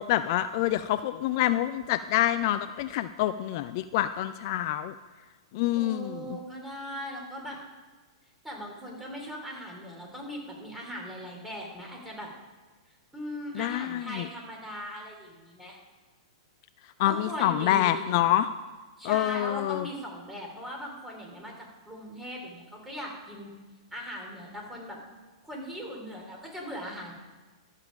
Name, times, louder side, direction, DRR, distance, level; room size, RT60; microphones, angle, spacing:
voice 1, 0.0-4.9 5.5-6.4 13.5-14.3 17.0-18.5 19.0-19.9, left 13 dB, 45° left, 12 dB, 0.3 m, -27 dB
voice 2, 5.7-7.6 8.4-12.3 13.1-15.8 17.0-18.0 19.0-21.5 21.8-23.5 23.9-25.0 25.4-27.1, equal, 5° right, -1 dB, 3.1 m, -39 dB
12.5 x 7.3 x 5.1 m, 1.3 s
figure-of-eight pair, 105°, 3 cm